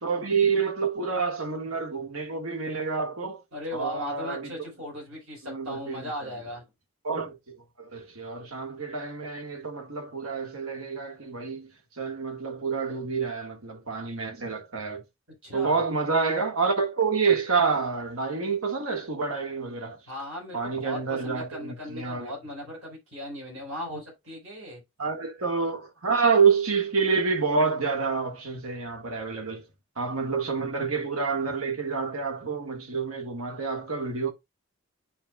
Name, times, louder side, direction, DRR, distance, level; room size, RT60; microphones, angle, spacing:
voice 1, 0.0-3.4 3.7-4.6 5.4-6.3 7.0-11.7 12.0-15.0 15.5-20.0 20.5-22.3 25.0-29.6 30.0-34.3, right 5 dB, 90° right, 1.8 m, -28 dB
voice 2, 3.5-6.6 15.4-15.8 20.1-24.8, left 1 dB, 65° right, 4.9 m, -37 dB
10.5 x 4.4 x 2.4 m
head